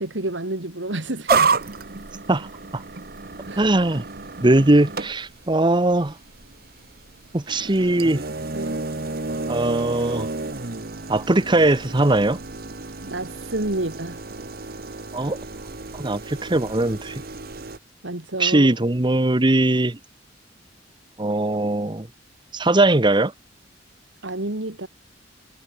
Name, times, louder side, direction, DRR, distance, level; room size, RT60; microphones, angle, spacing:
voice 1, 0.0-1.5 3.5-3.7 8.5-8.8 13.0-14.2 18.0-18.7 24.2-24.9, right 2 dB, 75° right, 2.4 m, -29 dB
sound 1, 1.3-17.8, right 4 dB, 55° right, 1.6 m, -31 dB
voice 2, 2.3-2.8 3.6-4.0 4.4-6.2 7.3-8.2 9.5-10.3 11.1-12.4 15.1-15.4 15.9-17.2 18.4-20.0 21.2-22.1 22.5-23.3, right 2 dB, 25° right, 1.0 m, -20 dB
head